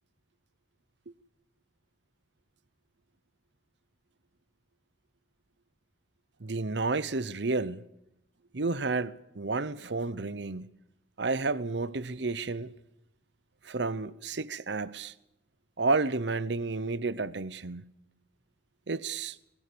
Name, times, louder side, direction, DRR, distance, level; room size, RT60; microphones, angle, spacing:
voice 1, 6.4-7.8 8.5-10.7 11.2-12.7 13.6-15.1 15.8-17.9 18.9-19.4, right 3 dB, 70° right, 0.9 m, -31 dB
25.5 x 21.5 x 6.9 m
head